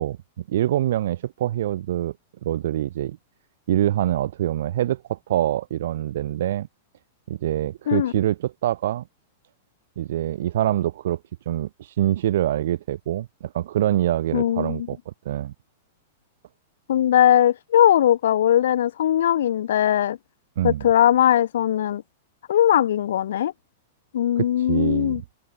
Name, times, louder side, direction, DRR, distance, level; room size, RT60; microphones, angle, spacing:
voice 1, 0.0-2.1 2.4-3.2 3.7-6.7 7.3-9.0 10.0-11.2 11.5-15.5 20.6-20.9 24.4-25.2, right 12 dB, 65° right, 7.7 m, -25 dB
voice 2, 14.3-14.8 16.9-20.2 20.6-22.0 22.5-23.5 24.1-25.2, left 11 dB, 70° left, 7.3 m, -19 dB
open air
hypercardioid pair, 105°, 0 cm